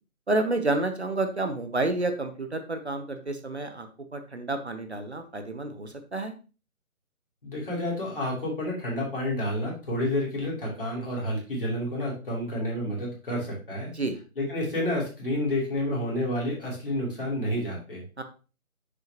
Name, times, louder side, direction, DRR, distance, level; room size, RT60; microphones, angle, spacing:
voice 1, 0.3-6.3 13.9-14.2 18.2-18.3, right 2 dB, 50° right, 7 dB, 0.8 m, -29 dB
voice 2, 7.4-13.9 14.4-18.0, left 1 dB, 40° left, -4 dB, 3.1 m, -29 dB
7.4 x 6.4 x 2.9 m, 0.34 s
figure-of-eight pair, 175°, 43 cm